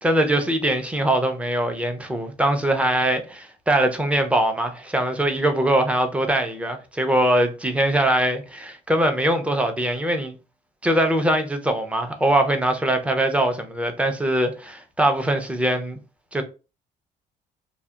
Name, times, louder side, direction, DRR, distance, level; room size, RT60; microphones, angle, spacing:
voice 1, 0.0-10.3 10.8-16.0 16.3-16.4, right 1 dB, 5° right, 0.4 m, -22 dB
2.7 x 2.0 x 2.2 m
cardioid pair, 110°, 17 cm